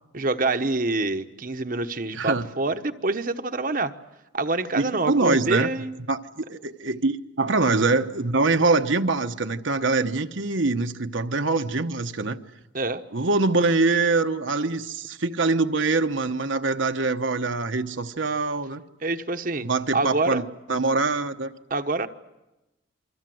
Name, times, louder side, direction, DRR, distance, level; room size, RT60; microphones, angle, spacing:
voice 1, 0.1-3.9 4.3-5.9 12.7-13.0 19.0-19.7 19.9-20.4 21.7-22.1, right 2 dB, 40° right, 1.1 m, -26 dB
voice 2, 2.1-2.5 4.7-5.7 6.1-12.4 13.1-18.8 19.6-20.4 20.7-21.5, right 3 dB, 65° right, 1.1 m, -24 dB
28.5 x 24.0 x 7.8 m
head